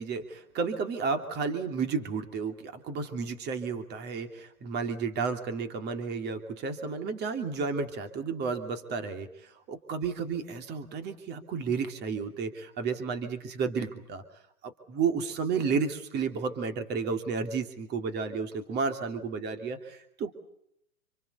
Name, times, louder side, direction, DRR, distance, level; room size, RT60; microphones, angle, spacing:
voice 1, 0.0-14.2 14.6-20.4, right 5 dB, 25° right, 7 dB, 2.8 m, -32 dB
27.5 x 23.5 x 6.8 m, 0.73 s
hypercardioid pair, 135°, 43 cm